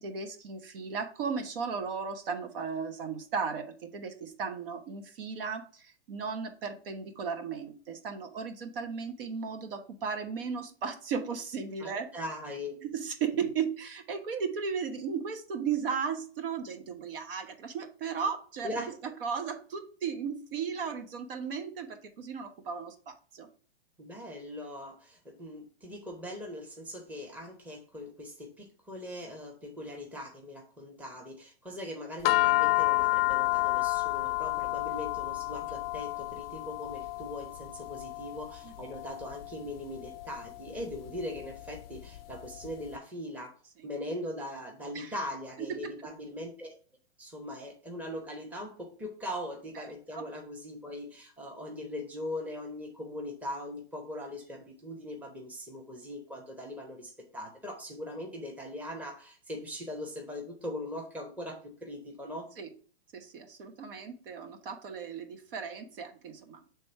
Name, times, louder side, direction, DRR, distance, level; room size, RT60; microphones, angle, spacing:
voice 1, 0.0-12.1 12.8-23.5 38.6-38.7 43.8-43.9 44.9-45.1 45.6-45.9 49.7-49.8 50.1-50.3 62.6-62.7 63.1-66.6, right 6 dB, 60° right, 6 dB, 1.2 m, -36 dB
voice 2, 11.8-12.8 18.6-18.9 24.0-43.5 43.8-46.8 47.2-62.5, left 1 dB, 5° right, 0 dB, 1.0 m, -40 dB
sound 1, 32.2-42.7, left 22 dB, 65° left, 0.4 m, -31 dB
6.3 x 3.5 x 4.3 m, 0.41 s
hypercardioid pair, 145°, 32 cm